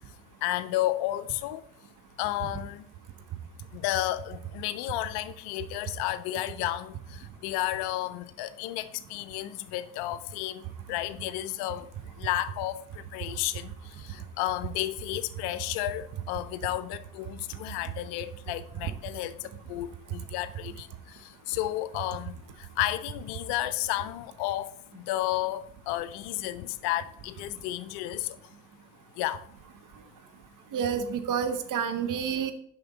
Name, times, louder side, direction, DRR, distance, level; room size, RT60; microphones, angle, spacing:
voice 1, 0.4-1.6 2.2-2.8 3.7-10.6 10.9-11.9 12.2-12.8 13.1-13.7 14.1-19.4 19.7-20.9 21.5-22.4 22.8-24.7 24.9-28.4 29.2-29.4, left 15 dB, 60° left, 0.6 m, -32 dB
voice 2, 30.7-32.5, right 7 dB, 45° right, 0.9 m, -29 dB
6.7 x 5.2 x 4.0 m
figure-of-eight pair, 50°, 43 cm